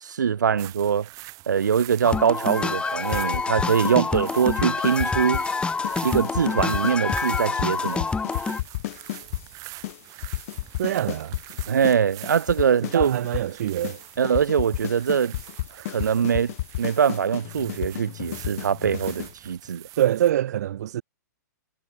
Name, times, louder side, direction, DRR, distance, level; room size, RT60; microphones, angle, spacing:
voice 1, 0.0-1.1 1.5-5.4 6.0-8.1 11.7-13.2 14.2-15.4 15.9-19.8, right 7 dB, 80° right, 1.3 m, -23 dB
sound 1, 0.6-20.3, right 21 dB, 35° right, 5.0 m, -44 dB
sound 2, 2.0-8.6, left 4 dB, 10° left, 2.1 m, -27 dB
sound 3, 3.3-5.5 5.8-6.0 6.2-9.5 9.8-10.0 10.2-12.0 12.2-13.5 13.8-14.0 14.2-19.3, left 16 dB, 55° left, 2.0 m, -31 dB
voice 2, 10.8-11.3 12.8-14.0 20.0-21.0, right 11 dB, 65° right, 1.0 m, -24 dB
hypercardioid pair, 120°, 10 cm